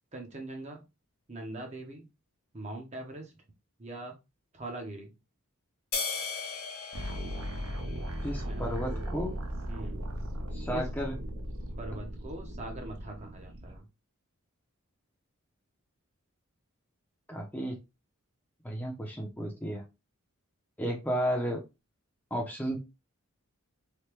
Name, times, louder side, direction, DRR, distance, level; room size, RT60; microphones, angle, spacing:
voice 1, 0.1-0.9 1.3-2.1 2.5-3.4 3.8-4.2 4.5-5.2 8.4-9.2 9.7-10.0 10.7-10.9 11.8-13.9, right 2 dB, 30° right, 3 dB, 0.6 m, -42 dB
sound 1, 5.9-8.5, left 5 dB, 45° left, 1.0 m, -37 dB
sound 2, 6.9-13.8, equal, 70° right, 0.6 m, -37 dB
voice 2, 8.2-9.3 10.5-11.2 17.3-17.7 18.6-19.8 20.8-21.6 22.3-22.8, equal, 10° left, 0 dB, 0.5 m, -33 dB
3.3 x 2.2 x 3.0 m, 0.25 s
head